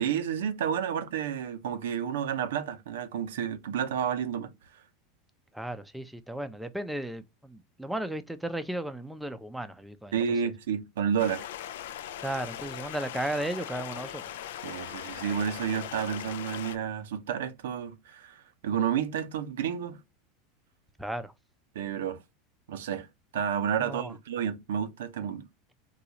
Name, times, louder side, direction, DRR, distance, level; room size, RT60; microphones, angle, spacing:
voice 1, 0.0-4.5 10.1-11.5 14.6-20.0 21.7-22.2 22.7-23.1 23.3-25.4, right 8 dB, 85° right, 0.6 m, -30 dB
voice 2, 5.5-10.2 12.2-14.2 21.0-21.3 23.8-24.1, right 1 dB, 5° right, 0.5 m, -35 dB
Stream, 11.2-16.8, left 11 dB, 85° left, 0.3 m, -40 dB
3.9 x 2.3 x 2.8 m
supercardioid pair, 125°, 0 cm